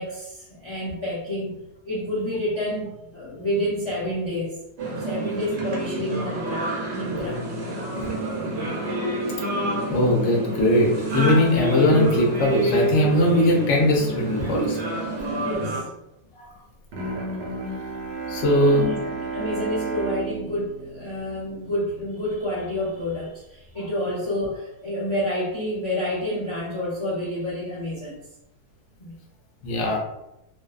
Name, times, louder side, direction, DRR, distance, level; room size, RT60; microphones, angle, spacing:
voice 1, 0.0-4.6 5.0-7.4 15.4-15.9 18.7-28.2 29.0-29.1, left 1 dB, 45° left, -7 dB, 0.3 m, -29 dB
sound 1, 4.8-15.8, right 2 dB, 60° right, 0.7 m, -27 dB
voice 2, 9.9-14.8 18.3-18.8 29.6-30.0, left 1 dB, 65° left, -1 dB, 0.8 m, -20 dB
Bowed string instrument, 16.9-22.0, right 3 dB, 90° right, 1.1 m, -32 dB
2.6 x 2.1 x 2.3 m, 0.88 s
omnidirectional pair, 1.7 m